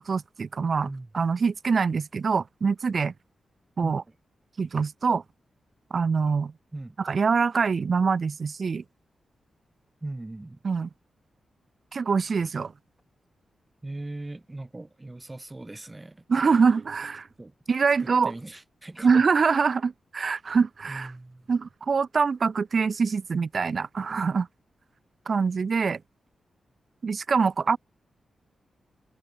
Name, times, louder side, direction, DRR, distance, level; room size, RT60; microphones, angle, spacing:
voice 1, 0.0-0.9 1.1-3.1 3.8-4.0 4.6-5.2 5.9-6.5 7.0-8.8 10.6-10.9 11.9-12.7 16.3-17.3 17.7-18.3 19.0-21.1 21.5-24.5 25.3-26.0 27.0-27.8, right 5 dB, 45° right, 0.5 m, -24 dB
voice 2, 10.0-10.6 13.8-16.2 16.5-16.6 17.4-17.5 18.0-19.1 20.9-21.5, right 2 dB, 15° right, 4.2 m, -39 dB
wide cardioid pair, 125°, 0 cm